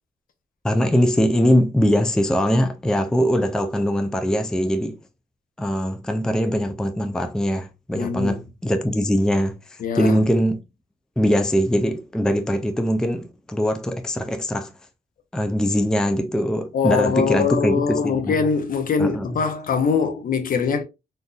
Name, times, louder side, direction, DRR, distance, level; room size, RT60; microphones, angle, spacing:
voice 1, 0.6-5.0 5.6-10.6 11.2-14.7 15.3-18.4 19.0-19.3, equal, 5° left, 0.4 m, -22 dB
voice 2, 8.0-8.4 9.8-10.2 16.7-20.8, left 5 dB, 60° left, 0.7 m, -22 dB
3.8 x 2.6 x 2.4 m
cardioid pair, 115°, 17 cm